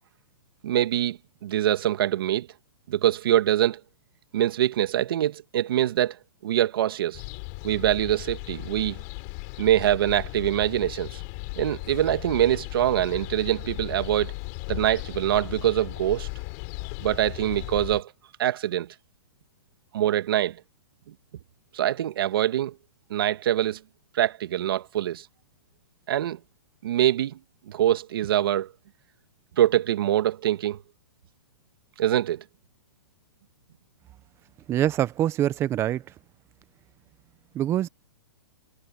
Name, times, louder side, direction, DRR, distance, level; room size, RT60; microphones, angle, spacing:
voice 1, 0.6-2.5 2.9-3.8 4.3-6.2 6.4-7.2 7.6-9.0 9.6-11.2 11.6-14.3 14.7-16.3 17.0-18.1 18.4-18.9 19.9-20.6 21.7-22.7 23.1-23.8 24.1-25.3 26.1-26.4 26.8-27.4 27.7-28.7 29.6-30.8 32.0-32.4, right 12 dB, 60° right, 1.7 m, -24 dB
sound 1, 7.1-18.0, left 34 dB, 40° left, 4.3 m, -36 dB
voice 2, 34.7-36.0 37.5-37.9, right 12 dB, 20° right, 0.8 m, -24 dB
hypercardioid pair, 145°, 13 cm